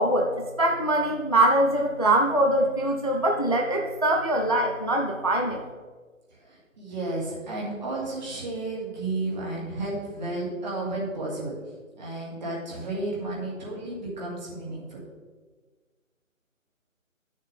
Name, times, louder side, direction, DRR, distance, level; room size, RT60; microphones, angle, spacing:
voice 1, 0.0-5.6, right 1 dB, 30° left, 2 dB, 0.5 m, -23 dB
voice 2, 6.4-11.5 12.0-15.0, right 2 dB, 35° right, -4 dB, 2.3 m, -32 dB
11.5 x 6.6 x 3.4 m, 1.4 s
figure-of-eight pair, 155°, 41 cm